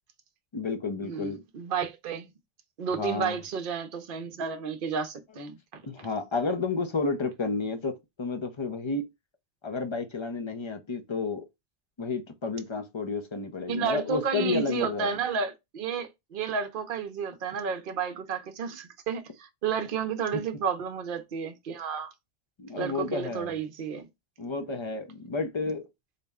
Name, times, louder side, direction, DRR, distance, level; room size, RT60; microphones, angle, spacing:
voice 1, 0.5-1.4 3.0-3.4 5.8-9.1 9.6-11.4 12.0-15.1 20.3-20.4 22.6-23.5 24.4-25.8, left 4 dB, 35° left, 0.5 m, -31 dB
voice 2, 1.0-2.3 2.8-5.8 13.7-22.1 22.8-24.1, right 6 dB, 55° right, 0.8 m, -32 dB
4.1 x 2.1 x 3.5 m
omnidirectional pair, 1.1 m